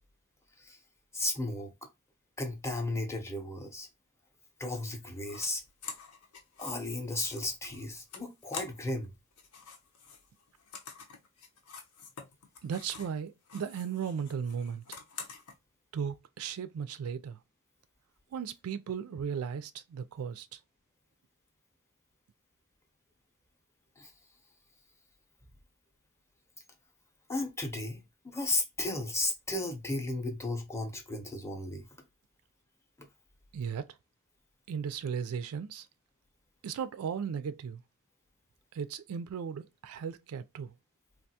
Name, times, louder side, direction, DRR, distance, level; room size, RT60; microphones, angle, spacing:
voice 1, 1.1-1.7 2.4-3.9 4.6-5.6 6.6-9.1 24.0-24.1 27.3-28.0 28.2-31.9, left 2 dB, 15° left, 0.6 m, -34 dB
sound 1, 5.2-5.5 5.8-9.0 9.3-13.2 13.4-15.5, left 5 dB, 85° left, 0.8 m, -47 dB
voice 2, 12.6-14.8 15.9-17.4 18.3-20.6 33.5-33.9 34.7-35.9 36.6-37.8 38.7-40.7, right 7 dB, 70° right, 0.3 m, -36 dB
3.4 x 2.4 x 2.7 m
head